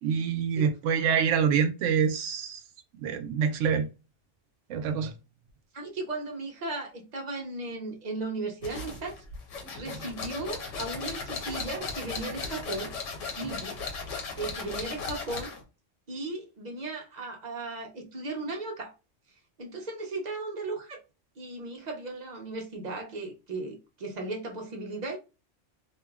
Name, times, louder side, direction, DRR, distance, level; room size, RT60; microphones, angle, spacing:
voice 1, 0.0-2.6 3.0-3.9 4.7-5.1, right 7 dB, 85° right, 0.9 m, -26 dB
voice 2, 5.7-9.2 9.7-12.9 13.4-15.5 16.1-18.9 19.6-21.0 21.4-25.2, right 2 dB, 45° right, 0.6 m, -36 dB
sound 1, 8.6-15.6, left 4 dB, 85° left, 1.2 m, -37 dB
2.9 x 2.5 x 2.3 m
omnidirectional pair, 1.2 m